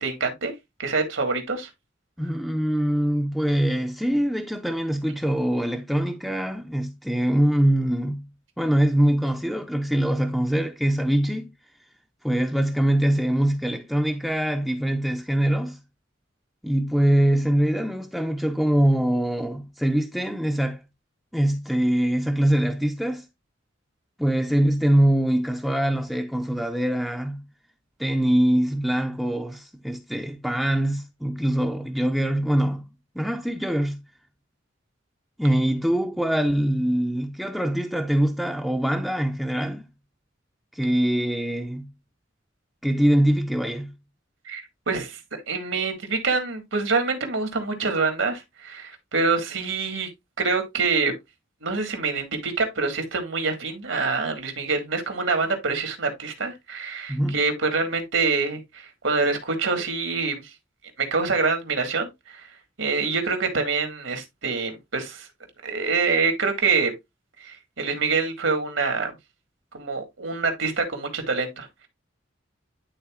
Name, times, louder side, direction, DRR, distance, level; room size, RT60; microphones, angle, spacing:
voice 1, 0.0-0.5 0.8-1.7 44.5-45.2 45.5-50.1 50.4-51.1 51.6-60.4 61.1-62.4 62.8-65.3 65.6-66.9 67.4-69.1 69.7-71.9, right 4 dB, 80° right, 1.9 m, -26 dB
voice 2, 2.2-8.3 8.6-11.5 12.2-15.8 16.6-20.8 21.3-23.3 24.2-27.4 28.0-32.9 33.2-34.0 35.4-39.8 40.7-41.9 42.8-43.9 57.1-57.4, right 1 dB, ahead, 0.5 m, -23 dB
11.5 x 3.9 x 2.4 m
head